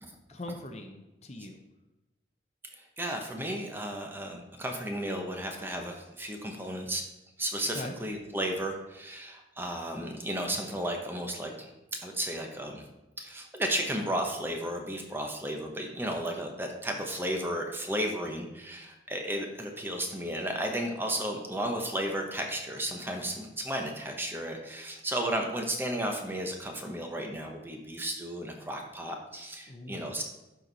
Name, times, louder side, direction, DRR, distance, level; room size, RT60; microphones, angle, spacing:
voice 1, 0.3-1.6 7.7-8.0 29.7-30.2, left 1 dB, 35° left, 5 dB, 0.7 m, -41 dB
voice 2, 2.8-7.0 7.4-12.9 13.2-30.2, right 1 dB, 10° right, 3 dB, 0.9 m, -34 dB
11.5 x 4.5 x 4.0 m, 1.0 s
head